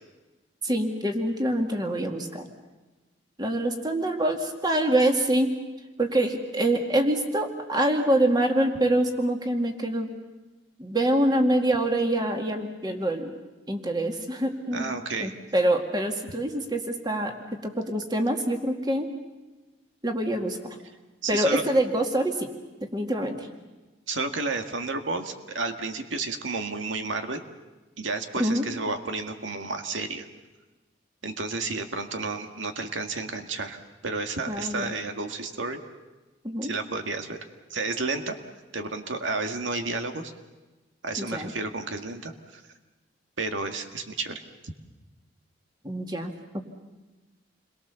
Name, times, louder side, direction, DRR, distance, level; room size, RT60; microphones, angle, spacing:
voice 1, 0.6-2.5 3.4-5.5 6.0-10.1 10.8-13.3 13.7-14.9 15.2-19.1 20.0-20.8 21.3-22.5 22.8-23.5 28.4-28.7 34.5-35.0 36.4-36.7 41.2-41.5 45.8-46.6, right 1 dB, 20° right, 3 dB, 2.2 m, -25 dB
voice 2, 14.7-15.3 21.2-21.6 24.1-27.4 28.0-30.3 31.2-35.8 36.6-37.4 37.7-38.4 38.7-40.3 41.0-42.6 43.4-44.7, right 3 dB, 85° right, 5 dB, 2.0 m, -31 dB
29.5 x 22.5 x 7.0 m, 1.2 s
head